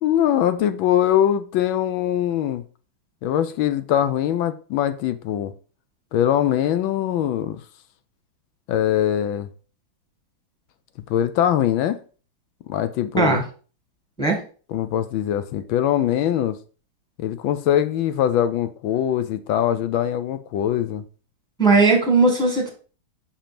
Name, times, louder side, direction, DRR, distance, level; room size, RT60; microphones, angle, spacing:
voice 1, 0.0-2.6 3.2-5.5 6.1-7.6 8.7-9.5 11.1-12.0 12.7-13.4 14.7-16.6 17.2-21.0, left 10 dB, 80° left, 1.4 m, -22 dB
voice 2, 21.6-22.7, right 3 dB, ahead, 1.4 m, -17 dB
5.5 x 5.0 x 5.0 m
omnidirectional pair, 2.2 m